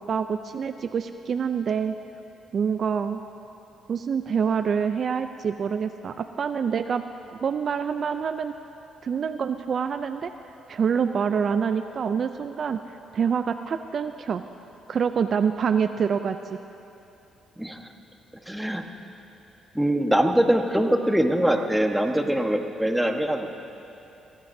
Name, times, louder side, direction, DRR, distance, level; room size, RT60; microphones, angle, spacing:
voice 1, 0.0-1.9 2.5-3.2 3.9-7.0 7.4-8.5 9.0-10.3 10.7-12.8 13.1-14.4 14.9-16.6, right 6 dB, 50° right, 9 dB, 0.4 m, -26 dB
voice 2, 17.6-17.9 18.5-18.8 19.7-23.5, right 1 dB, 5° right, 4 dB, 1.2 m, -23 dB
24.0 x 18.0 x 2.7 m, 2.8 s
cardioid pair, 90°, 0 cm